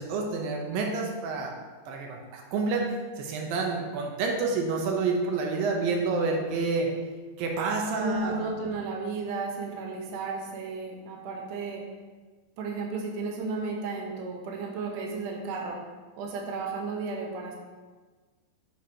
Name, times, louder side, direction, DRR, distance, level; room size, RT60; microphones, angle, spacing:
voice 1, 0.0-1.5 1.9-6.9 7.4-8.5, right 4 dB, 90° right, 1 dB, 2.7 m, -29 dB
voice 2, 8.0-11.8 12.6-15.8 16.2-17.6, right 3 dB, 70° right, 0 dB, 2.6 m, -33 dB
10.5 x 8.1 x 3.0 m, 1.4 s
omnidirectional pair, 4.0 m